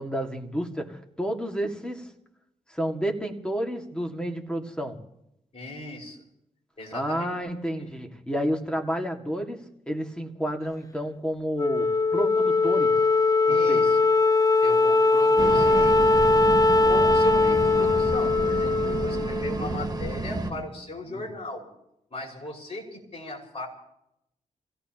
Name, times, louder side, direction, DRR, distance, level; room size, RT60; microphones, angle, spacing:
voice 1, 0.0-2.1 2.7-5.0 6.9-13.0 13.5-13.8 19.6-20.6 21.1-21.3, equal, 5° left, 3 dB, 2.1 m, -31 dB
voice 2, 5.5-6.2 6.8-7.3 7.8-7.9 13.5-14.0 14.6-16.0 16.8-21.7 22.1-23.7, left 2 dB, 45° left, -2 dB, 5.6 m, -37 dB
Wind instrument woodwind instrument, 11.6-20.1, left 3 dB, 25° left, 0.8 m, -21 dB
sound 1, 15.4-20.5, right 3 dB, 25° right, 1.5 m, -31 dB
28.5 x 17.0 x 3.0 m, 0.81 s
cardioid pair, 100°, 14 cm